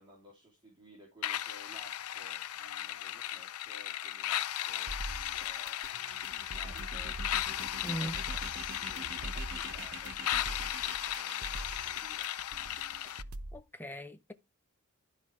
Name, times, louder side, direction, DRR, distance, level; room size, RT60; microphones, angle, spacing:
voice 1, 0.0-5.8 6.2-12.3, right 1 dB, 20° right, 3.2 m, -58 dB
sound 1, 1.2-13.2, left 12 dB, 85° left, 0.5 m, -36 dB
sound 2, 4.9-13.6, right 1 dB, 85° right, 0.9 m, -44 dB
sound 3, 6.1-12.2, right 3 dB, 55° right, 1.4 m, -47 dB
voice 2, 7.8-8.2 13.5-14.3, right 1 dB, 10° left, 0.9 m, -39 dB
12.0 x 5.4 x 4.6 m
head